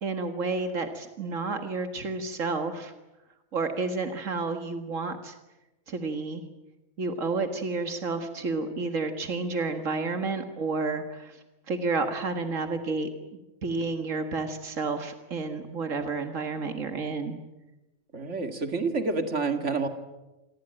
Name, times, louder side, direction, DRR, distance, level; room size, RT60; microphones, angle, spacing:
voice 1, 0.0-2.9 3.5-5.4 5.9-6.4 7.0-11.4 11.7-13.1 13.6-17.4, right 3 dB, 90° right, 7 dB, 2.1 m, -30 dB
voice 2, 18.1-19.9, right 4 dB, 70° right, 7 dB, 2.5 m, -28 dB
27.5 x 21.0 x 8.9 m, 1.0 s
omnidirectional pair, 1.3 m